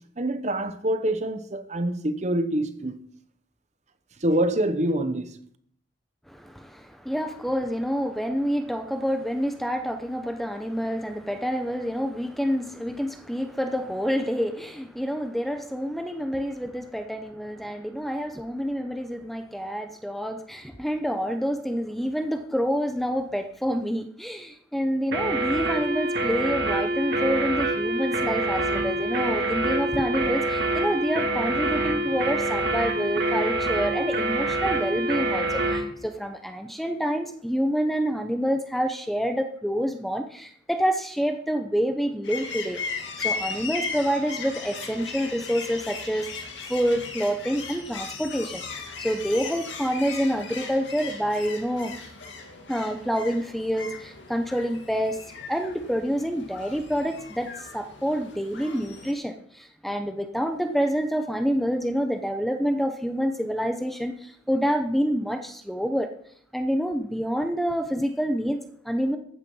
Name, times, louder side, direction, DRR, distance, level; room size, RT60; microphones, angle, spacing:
voice 1, 0.2-3.0 4.2-5.3, right 1 dB, 35° right, 0.9 m, -25 dB
voice 2, 6.3-42.8 43.2-48.6 49.0-51.9 52.7-55.2 55.5-66.1 66.5-69.2, equal, ahead, 0.8 m, -27 dB
sound 1, 25.1-35.9, right 2 dB, 55° right, 2.0 m, -26 dB
sound 2, 42.2-59.1, left 5 dB, 65° left, 2.2 m, -37 dB
14.5 x 9.0 x 5.6 m
head